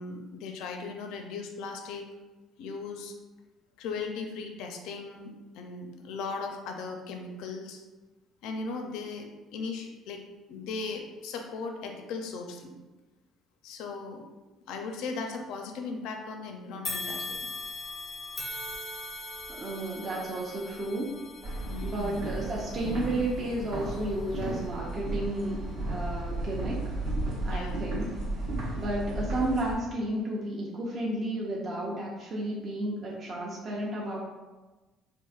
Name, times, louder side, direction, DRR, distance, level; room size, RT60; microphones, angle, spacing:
voice 1, 0.0-2.0 2.6-3.1 3.8-5.3 5.5-7.8 8.4-9.2 9.5-10.2 10.5-12.7 13.6-14.2 14.7-17.4 21.6-22.1 27.4-27.9, left 4 dB, 80° left, 3 dB, 0.4 m, -37 dB
sound 1, 16.8-26.2 26.7-26.8 27.8-27.9, left 2 dB, 20° left, 0.5 m, -41 dB
voice 2, 19.5-21.1 21.5-25.6 25.9-26.9 27.4-28.1 28.8-34.2, right 1 dB, 30° right, -3 dB, 0.5 m, -32 dB
sound 2, 21.4-29.7, right 2 dB, 80° right, 1.0 m, -34 dB
4.6 x 2.4 x 2.4 m, 1.2 s
cardioid pair, 165°, 0 cm